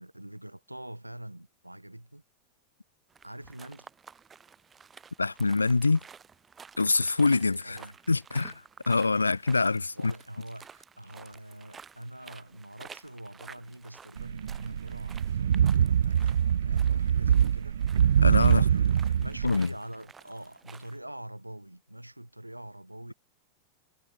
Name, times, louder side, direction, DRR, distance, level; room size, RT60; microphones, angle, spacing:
voice 1, 0.0-2.2 3.2-3.9 7.6-7.9 9.9-17.8 18.4-23.1, right 1 dB, 85° right, 6.2 m, -44 dB
sound 1, 3.1-21.0, right 6 dB, 20° right, 7.0 m, -52 dB
voice 2, 5.2-6.0 6.8-7.8 8.1-10.1 18.2-18.7 19.4-19.7, left 3 dB, 80° left, 1.7 m, -25 dB
sound 2, 14.2-19.6, right 9 dB, 65° right, 0.5 m, -24 dB
figure-of-eight pair, 90°, 0 cm